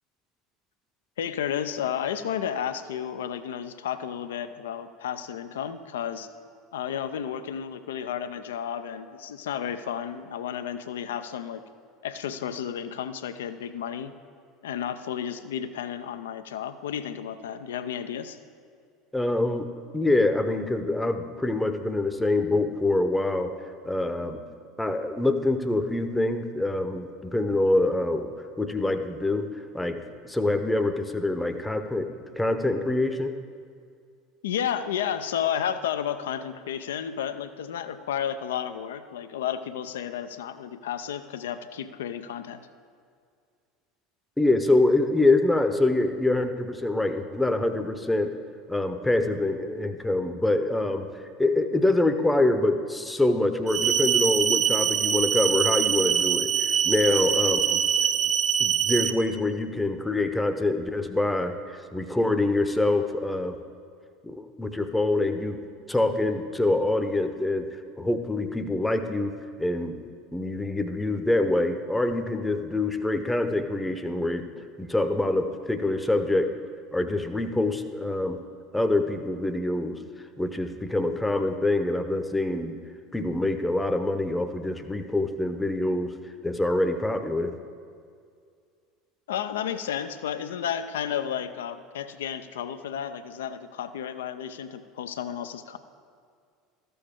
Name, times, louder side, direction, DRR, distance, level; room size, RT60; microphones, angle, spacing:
voice 1, 1.2-6.3 6.7-11.6 12.0-14.1 14.6-18.4 34.4-42.6 89.3-95.8, left 9 dB, 80° left, 11 dB, 0.4 m, -32 dB
voice 2, 19.1-19.7 19.9-23.5 23.8-24.4 24.8-29.5 29.7-30.0 30.2-32.1 32.4-33.3 44.4-48.4 48.7-51.1 51.4-57.8 58.6-63.6 64.2-65.6 65.9-67.7 68.0-69.3 69.6-70.0 70.3-76.5 76.9-78.4 78.7-80.0 80.4-82.7 83.1-86.1 86.4-87.5, left 2 dB, 10° left, 8 dB, 0.7 m, -25 dB
sound 1, 53.7-59.1, right 9 dB, 40° right, 0.4 m, -24 dB
13.0 x 6.9 x 3.6 m, 2.2 s
hypercardioid pair, 75°, 0 cm